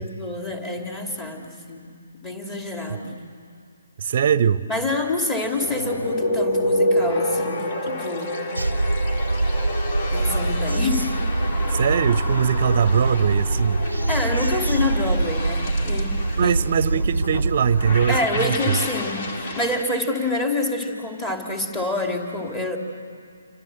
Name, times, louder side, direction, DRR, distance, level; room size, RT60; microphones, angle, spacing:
voice 1, 0.0-2.0 2.2-3.2 4.7-8.4 10.1-11.2 14.1-16.2 16.4-16.6 16.9-17.1 18.1-22.8, left 2 dB, 15° left, 2.8 m, -27 dB
voice 2, 4.0-4.6 11.7-13.9 16.4-18.8, right 8 dB, 40° right, 0.8 m, -21 dB
sound 1, 5.6-19.8, left 1 dB, 40° left, 2.2 m, -28 dB
sound 2, 8.6-18.2, right 2 dB, 75° right, 0.6 m, -24 dB
28.5 x 25.5 x 7.9 m
figure-of-eight pair, 140°, 0 cm